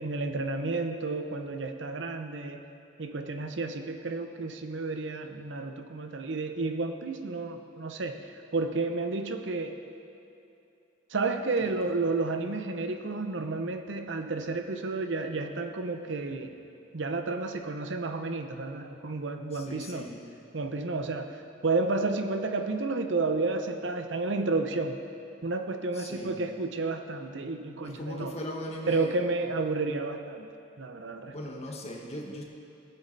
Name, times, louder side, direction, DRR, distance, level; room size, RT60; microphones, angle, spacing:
voice 1, 0.0-2.6 3.0-8.2 8.5-9.8 11.1-16.6 16.9-20.1 20.5-25.0 25.4-28.3 28.9-30.5 30.8-31.3, right 3 dB, 70° right, 6 dB, 0.8 m, -31 dB
voice 2, 11.6-11.9 19.5-20.2 25.9-26.4 27.8-29.2 31.3-32.4, equal, 35° left, 0 dB, 1.4 m, -39 dB
18.0 x 8.3 x 4.0 m, 2.8 s
head